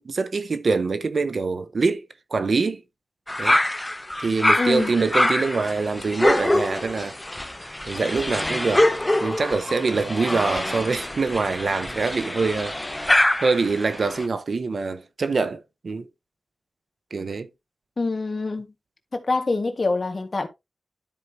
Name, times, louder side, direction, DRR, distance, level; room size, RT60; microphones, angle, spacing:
voice 1, 0.0-2.8 3.4-3.6 4.2-8.9 9.2-12.8 13.4-16.1 17.1-17.5, right 4 dB, 70° right, 0.9 m, -25 dB
sound 1, 3.3-14.3, left 1 dB, 15° left, 0.6 m, -24 dB
voice 2, 4.6-4.9 18.0-18.7 19.1-20.5, left 3 dB, 45° left, 1.7 m, -25 dB
12.5 x 4.9 x 2.8 m
wide cardioid pair, 80°, 0 cm